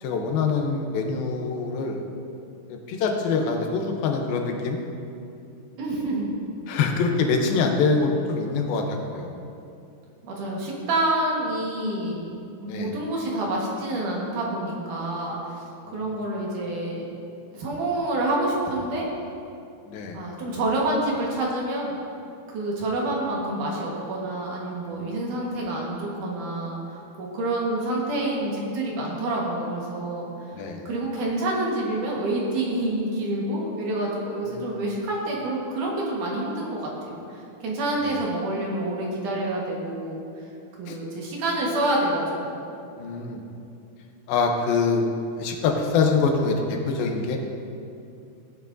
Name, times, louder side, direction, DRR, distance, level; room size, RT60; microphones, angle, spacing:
voice 1, 0.0-2.0 2.7-4.8 6.7-9.3 12.7-12.9 15.9-16.0 19.9-20.2 24.9-25.1 30.5-30.8 34.5-34.8 38.0-38.2 40.9-41.0 43.0-43.4 44.3-45.1 45.4-47.4, left 4 dB, 80° left, 3 dB, 2.6 m, -25 dB
voice 2, 5.8-6.3 10.2-12.2 12.6-17.1 17.5-19.1 20.1-22.0 22.5-30.5 30.9-40.2 40.8-42.6, right 1 dB, 65° right, -3 dB, 2.8 m, -28 dB
16.0 x 8.9 x 2.6 m, 2.6 s
omnidirectional pair, 4.3 m